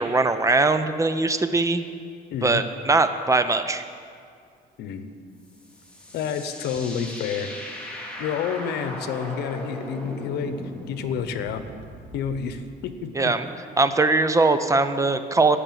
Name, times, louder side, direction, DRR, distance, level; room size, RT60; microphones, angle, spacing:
voice 1, 0.0-1.8 2.4-3.8 13.2-13.5 13.8-15.6, right 3 dB, 20° right, 10 dB, 0.6 m, -21 dB
voice 2, 2.3-2.6 4.8-5.1 6.1-7.5 8.2-11.6 12.1-13.3, left 7 dB, 75° left, 9 dB, 1.1 m, -29 dB
sound 1, 5.4-12.6, left 1 dB, 5° left, 2.8 m, -38 dB
18.0 x 6.7 x 7.6 m, 2.3 s
cardioid pair, 110°, 17 cm